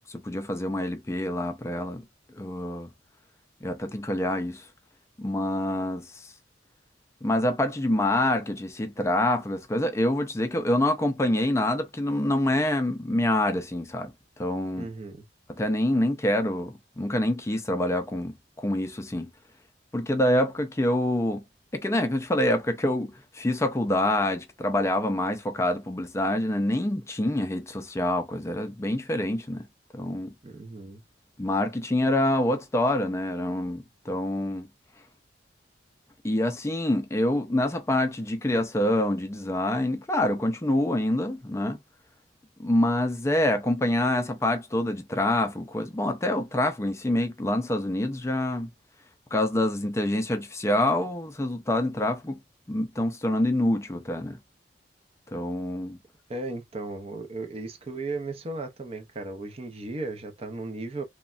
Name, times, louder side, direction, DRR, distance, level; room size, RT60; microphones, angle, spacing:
voice 1, 0.1-2.0 2.4-2.9 3.6-4.7 5.2-6.3 7.2-14.9 15.5-19.3 19.9-21.4 21.7-29.7 29.9-30.3 31.4-34.7 36.2-41.8 42.6-48.7 49.3-52.4 52.7-54.4 55.3-56.0, left 1 dB, 15° left, 0.4 m, -26 dB
voice 2, 14.8-15.3 30.4-31.0 56.3-61.0, right 2 dB, 35° right, 0.5 m, -35 dB
3.2 x 2.1 x 2.3 m
head